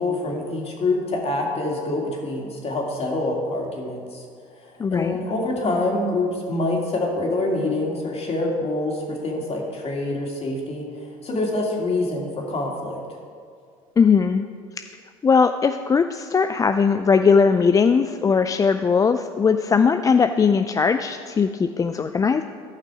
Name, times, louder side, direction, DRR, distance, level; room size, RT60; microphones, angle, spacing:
voice 1, 0.0-4.2 4.9-13.0, left 2 dB, 35° left, 0 dB, 2.5 m, -26 dB
voice 2, 4.8-5.2 14.0-14.4 15.2-22.4, left 5 dB, 20° left, 8 dB, 0.3 m, -19 dB
14.0 x 5.8 x 4.8 m, 2.2 s
hypercardioid pair, 70°, 17 cm